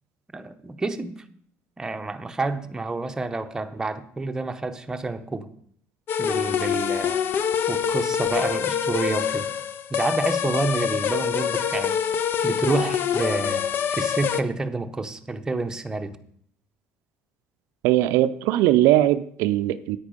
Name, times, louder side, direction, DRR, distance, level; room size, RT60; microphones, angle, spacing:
voice 1, 0.3-1.2 1.8-5.5 6.2-7.2 7.7-9.5 9.9-12.0 12.4-16.2, right 3 dB, 15° right, 7 dB, 0.8 m, -29 dB
sound 1, 6.1-14.4, left 8 dB, 50° left, 0.7 m, -25 dB
voice 2, 17.8-20.0, right 14 dB, 80° right, 12 dB, 0.5 m, -20 dB
9.6 x 8.9 x 5.2 m, 0.62 s
cardioid pair, 135°, 5 cm